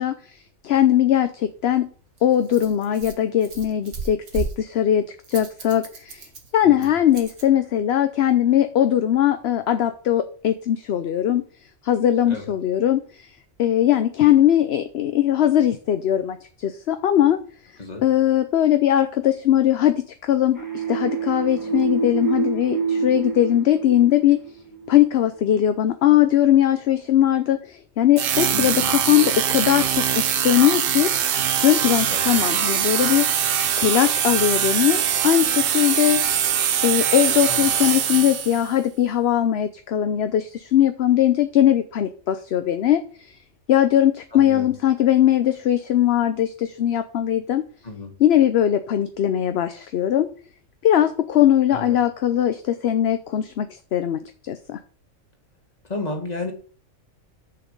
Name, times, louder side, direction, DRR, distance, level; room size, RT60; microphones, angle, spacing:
voice 1, 0.0-1.9 2.2-6.3 6.5-11.4 11.8-13.3 13.6-17.4 18.0-24.4 24.9-31.1 31.6-33.3 33.8-43.4 43.7-47.6 48.2-50.3 50.8-54.8, left 11 dB, 60° left, 9 dB, 0.8 m, -20 dB
Rattle, 1.4-7.5, right 4 dB, 85° right, 1.9 m, -36 dB
voice 2, 6.6-6.9 12.3-12.4 17.8-18.0 28.5-29.0 32.1-32.3 37.5-37.8 44.3-44.7 47.8-48.1 51.7-52.0 55.9-56.5, left 2 dB, 30° left, 3 dB, 1.9 m, -32 dB
sound 1, 20.5-25.1, right 6 dB, 15° right, 1.9 m, -27 dB
sound 2, 28.2-38.7, right 9 dB, 55° right, 0.7 m, -22 dB
6.9 x 5.8 x 6.5 m, 0.42 s
omnidirectional pair, 1.4 m